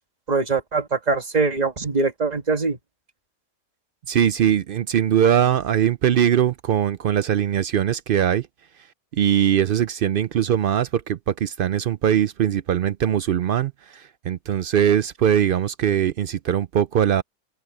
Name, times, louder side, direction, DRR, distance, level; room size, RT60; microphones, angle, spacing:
voice 1, 0.3-2.8, right 4 dB, 30° right, 1.5 m, -22 dB
voice 2, 4.1-8.5 9.1-17.2, right 9 dB, 70° right, 0.5 m, -21 dB
omnidirectional pair, 1.5 m